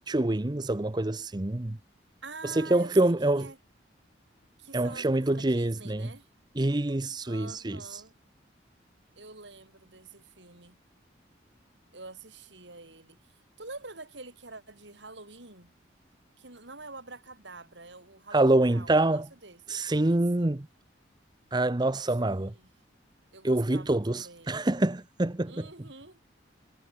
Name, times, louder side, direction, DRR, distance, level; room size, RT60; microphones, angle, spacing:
voice 1, 0.1-1.8 2.4-3.5 4.7-6.1 6.6-8.0 18.3-19.3 19.7-20.7 21.5-22.5 23.4-25.7, right 2 dB, 25° right, 0.7 m, -26 dB
voice 2, 2.2-3.6 4.6-6.3 7.3-8.2 9.2-10.8 11.9-13.2 13.6-15.7 16.4-19.6 19.9-20.6 22.2-22.7 23.3-24.6 25.5-26.2, right 3 dB, 80° right, 7.3 m, -46 dB
head